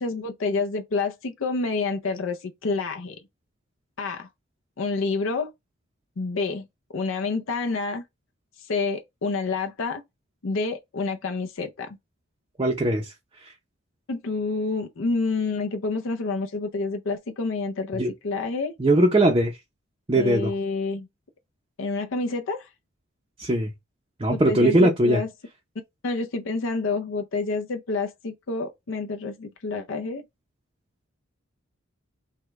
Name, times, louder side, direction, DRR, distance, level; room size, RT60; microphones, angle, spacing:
voice 1, 0.0-3.2 4.0-4.3 4.8-5.5 6.2-6.7 6.9-8.0 8.6-10.0 10.4-12.0 14.1-18.7 20.2-21.1 21.8-22.7 24.3-25.3 26.0-30.2, left 3 dB, 65° left, 0.5 m, -28 dB
voice 2, 12.6-13.1 17.9-18.1 18.8-19.6 20.1-20.5 23.4-23.7 24.2-25.2, right 1 dB, 25° right, 0.5 m, -20 dB
4.8 x 2.2 x 3.5 m
head